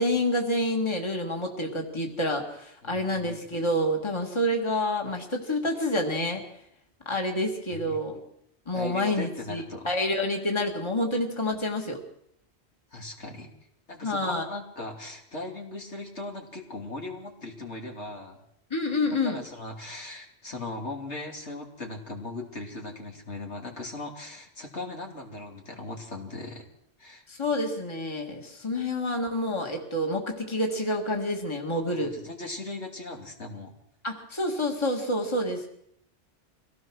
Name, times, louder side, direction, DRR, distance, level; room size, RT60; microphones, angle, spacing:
voice 1, 0.0-6.4 7.1-8.2 8.7-12.0 14.0-14.4 18.7-19.4 27.3-32.1 34.0-35.7, left 1 dB, 25° left, 1 dB, 2.3 m, -28 dB
voice 2, 2.8-3.3 7.7-7.9 8.7-9.9 12.9-13.5 13.9-18.4 19.2-26.7 27.0-27.2 31.9-33.7, left 2 dB, 65° left, 1 dB, 3.2 m, -38 dB
24.5 x 17.0 x 6.3 m, 0.74 s
omnidirectional pair, 1.2 m